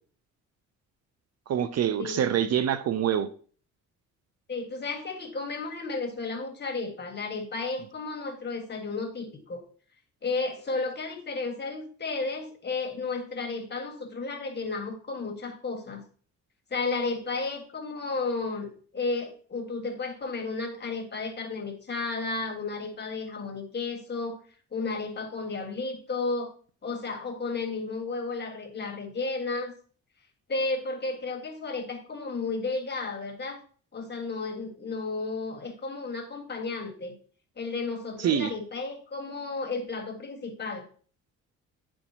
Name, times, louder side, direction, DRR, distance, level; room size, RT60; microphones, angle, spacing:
voice 1, 1.5-3.3 38.2-38.5, right 9 dB, 55° right, 0.6 m, -25 dB
voice 2, 4.5-9.6 10.2-16.0 16.7-24.4 24.7-26.5 26.8-29.7 30.5-33.6 33.9-37.2 37.6-40.9, left 3 dB, 35° left, 1.6 m, -33 dB
9.8 x 4.4 x 2.8 m
cardioid pair, 90°, 30 cm